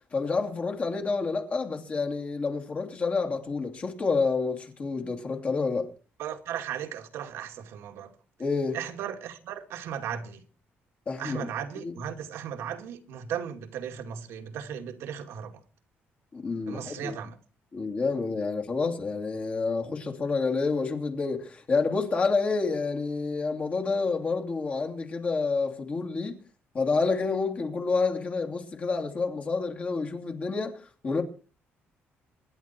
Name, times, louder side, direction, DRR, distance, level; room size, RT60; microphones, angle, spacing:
voice 1, 0.1-5.9 8.4-8.8 11.1-11.5 11.8-12.0 16.3-17.1 17.7-26.4 26.7-31.2, left 4 dB, 35° left, 2.8 m, -28 dB
voice 2, 6.2-8.1 8.7-10.4 11.2-15.5 16.7-17.3, right 9 dB, 85° right, 2.4 m, -36 dB
24.5 x 11.0 x 4.5 m
cardioid pair, 150°, 4 cm